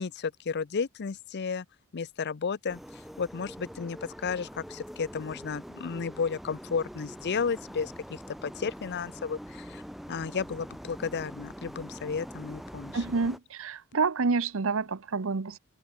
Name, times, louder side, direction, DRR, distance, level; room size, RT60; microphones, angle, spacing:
voice 1, 0.0-1.6 1.9-2.8 3.2-9.8 10.1-13.0, left 5 dB, 50° left, 0.5 m, -33 dB
sound 1, 2.7-13.4, equal, ahead, 1.5 m, -44 dB
voice 2, 12.9-15.6, right 4 dB, 65° right, 0.8 m, -28 dB
open air
head